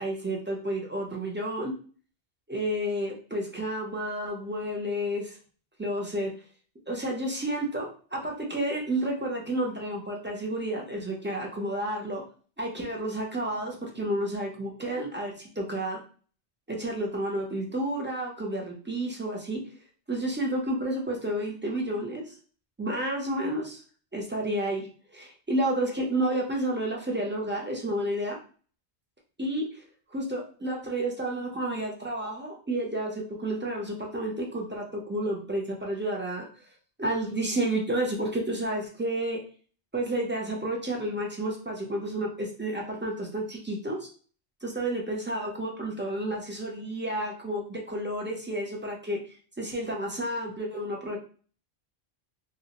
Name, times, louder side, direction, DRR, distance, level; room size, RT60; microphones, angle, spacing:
voice 1, 0.0-1.7 2.5-5.4 5.8-6.3 6.9-12.2 12.6-16.0 16.7-19.6 20.1-22.3 22.8-23.8 24.1-28.4 29.4-29.8 30.1-36.4 37.0-39.4 39.9-44.1 44.6-49.2 49.6-51.2, right 1 dB, 20° right, 0 dB, 0.3 m, -31 dB
3.1 x 2.5 x 2.9 m, 0.41 s
omnidirectional pair, 1.1 m